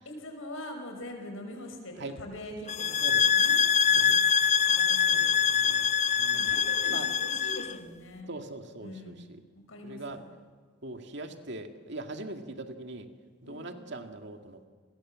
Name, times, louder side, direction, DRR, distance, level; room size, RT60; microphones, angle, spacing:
voice 1, 0.1-1.9 2.2-3.0 3.3-4.2 4.7-5.3 6.3-8.4 8.8-9.2 9.5-10.2 13.4-13.8, left 1 dB, 80° left, 4 dB, 5.5 m, -43 dB
sound 1, 2.7-7.7, left 7 dB, 35° left, 0.8 m, -24 dB
voice 2, 5.1-5.9 6.2-6.6 6.9-7.1 8.3-9.4 9.8-10.2 10.8-13.1 13.4-14.7, right 2 dB, 55° right, 5 dB, 2.2 m, -41 dB
29.5 x 21.5 x 7.6 m, 1.5 s
head